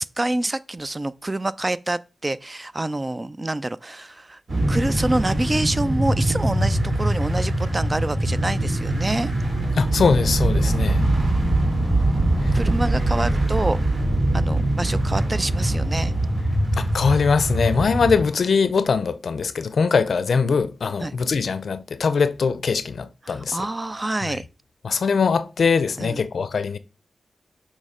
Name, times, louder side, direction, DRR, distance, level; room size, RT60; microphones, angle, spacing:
voice 1, 0.0-4.4 4.7-9.3 12.5-13.8 14.3-16.1 21.0-21.1 23.2-24.5 26.0-26.2, right 2 dB, 30° right, 0.4 m, -27 dB
sound 1, 4.5-18.2, right 1 dB, 60° right, 2.3 m, -22 dB
voice 2, 9.8-11.1 12.4-12.6 16.8-23.6 24.3-24.4 24.8-26.8, left 5 dB, 75° left, 0.5 m, -22 dB
6.3 x 3.1 x 4.9 m
cardioid pair, 55°, 0 cm